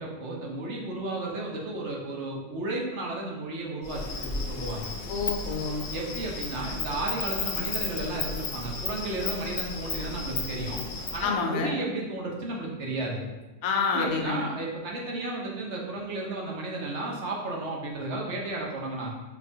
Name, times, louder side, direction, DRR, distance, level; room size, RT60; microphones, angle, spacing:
voice 1, 0.0-4.9 5.9-10.8 11.1-13.2 13.9-19.1, right 2 dB, 65° right, -2 dB, 1.0 m, -33 dB
Insect, 3.8-11.2, left 4 dB, 60° left, 0.7 m, -34 dB
voice 2, 5.1-5.9 11.2-11.8 13.6-14.5, left 5 dB, 85° left, 2 dB, 1.0 m, -28 dB
5.1 x 2.3 x 2.6 m, 1.1 s
omnidirectional pair, 1.4 m